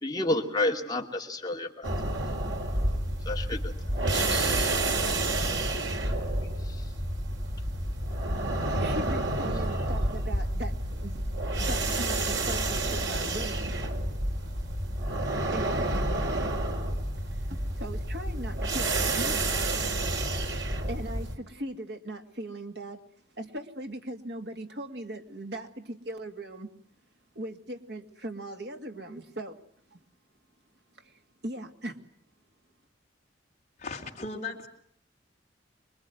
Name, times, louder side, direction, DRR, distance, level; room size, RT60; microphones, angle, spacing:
voice 1, 0.0-1.9 3.2-3.7 4.1-4.9 6.6-6.9, left 2 dB, 20° left, 1 dB, 2.5 m, -31 dB
sound 1, 1.8-21.4, right 2 dB, 80° right, 4.5 m, -29 dB
voice 2, 8.8-11.3 11.6-13.9 15.5-16.1 17.3-19.4 20.1-20.2 20.8-23.0 23.4-26.7 27.3-29.6 29.9-30.0 31.0-32.0, right 1 dB, 60° right, 5 dB, 2.4 m, -39 dB
voice 3, 33.8-34.7, left 3 dB, 35° left, 1 dB, 3.8 m, -37 dB
26.0 x 23.0 x 9.4 m, 0.65 s
head